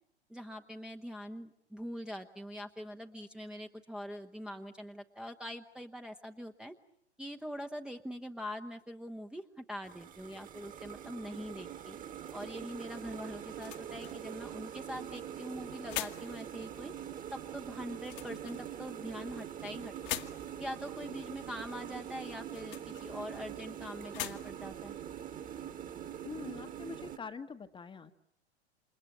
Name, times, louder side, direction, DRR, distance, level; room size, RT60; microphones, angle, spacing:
voice 1, 0.3-6.8 7.2-12.0 12.3-16.9 17.3-20.2 20.6-25.0, equal, ahead, 3 dB, 1.1 m, -43 dB
sound 1, 9.8-27.2, right 9 dB, 25° right, 1.8 m, -44 dB
sound 2, 13.0-26.2, left 15 dB, 50° left, 1.8 m, -47 dB
voice 2, 26.2-28.1, left 5 dB, 15° left, 10 dB, 1.4 m, -44 dB
29.0 x 27.0 x 7.5 m, 0.71 s
figure-of-eight pair, 95°, 34 cm